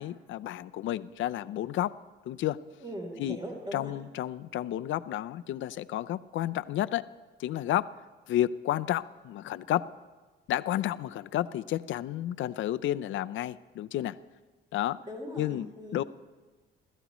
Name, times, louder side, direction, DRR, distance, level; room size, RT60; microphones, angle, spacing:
voice 1, 0.0-2.0 2.3-2.6 3.2-3.4 3.7-7.0 7.4-7.9 8.3-9.9 10.5-14.2 14.7-15.0 15.4-16.0, left 13 dB, 75° left, 13 dB, 0.6 m, -31 dB
voice 2, 2.8-3.9 15.0-16.0, equal, 20° right, 0 dB, 3.5 m, -40 dB
28.5 x 14.5 x 3.1 m, 1.3 s
cardioid pair, 90°, 20 cm